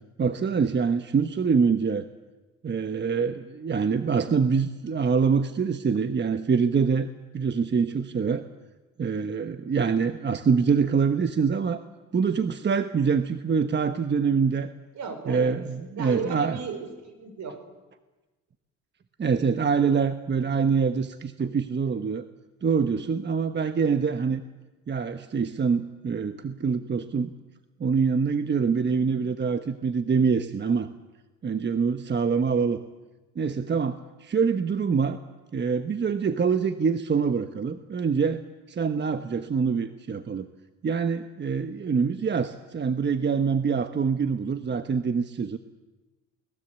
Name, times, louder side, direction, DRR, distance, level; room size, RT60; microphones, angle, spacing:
voice 1, 0.2-2.1 2.6-7.1 7.3-8.4 9.0-11.8 12.1-14.7 15.3-16.6 19.2-22.3 22.6-24.4 24.9-27.3 27.8-30.9 31.4-32.8 33.3-35.2 35.5-38.4 38.7-40.5 40.8-45.6, right 5 dB, 35° right, 9 dB, 1.1 m, -25 dB
voice 2, 15.0-15.5 15.9-17.6, right 5 dB, 65° right, 8 dB, 5.3 m, -35 dB
28.5 x 20.0 x 8.2 m, 1.2 s
cardioid pair, 90°, 30 cm